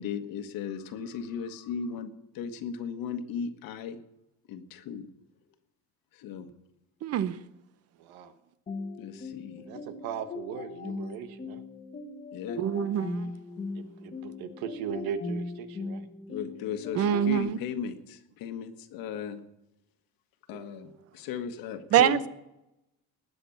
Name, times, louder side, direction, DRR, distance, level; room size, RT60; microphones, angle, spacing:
voice 1, 0.0-4.0 4.5-5.1 6.1-6.5 9.0-9.7 12.3-12.6 16.3-19.4 20.5-22.3, left 7 dB, 70° left, 1.6 m, -36 dB
voice 2, 7.0-7.3 12.6-13.3 17.0-17.6 20.5-20.6 21.9-22.3, right 10 dB, 45° right, 0.7 m, -25 dB
voice 3, 8.0-8.3 9.6-11.6 13.7-16.1, right 7 dB, 80° right, 1.4 m, -38 dB
sound 1, 8.7-17.4, left 3 dB, 20° left, 1.2 m, -39 dB
19.5 x 8.0 x 7.2 m
cardioid pair, 165°, 35 cm